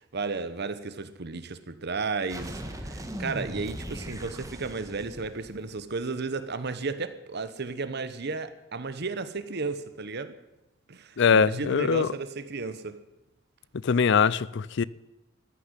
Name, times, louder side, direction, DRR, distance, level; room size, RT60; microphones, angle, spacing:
voice 1, 0.0-10.4 10.9-13.0, right 4 dB, 55° right, 1.0 m, -33 dB
sound 1, 2.3-6.0, right 1 dB, 15° right, 1.7 m, -39 dB
voice 2, 11.2-12.1 13.8-14.8, left 6 dB, 65° left, 0.5 m, -22 dB
14.5 x 10.0 x 9.8 m
head